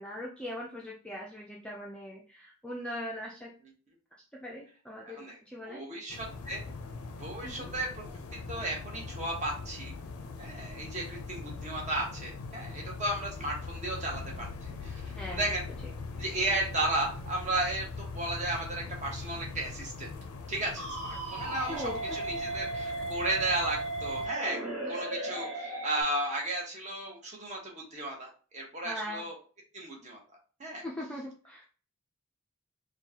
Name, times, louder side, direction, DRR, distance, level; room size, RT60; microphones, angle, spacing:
voice 1, 0.0-3.5 4.3-5.8 7.4-7.7 15.1-15.4 21.7-22.2 24.8-24.9 28.8-29.2 30.8-31.6, left 1 dB, 5° left, -3 dB, 0.4 m, -40 dB
voice 2, 5.0-5.4 5.6-6.6 7.2-8.0 8.5-9.9 10.4-15.7 16.2-20.1 20.5-24.6 24.9-29.4 29.7-30.2 30.6-30.8, right 1 dB, 30° right, -1 dB, 1.0 m, -34 dB
sound 1, 6.1-24.3, left 4 dB, 80° left, 0.5 m, -42 dB
sound 2, 20.8-26.0, right 2 dB, 80° right, 1.3 m, -36 dB
4.4 x 2.3 x 2.8 m, 0.39 s
head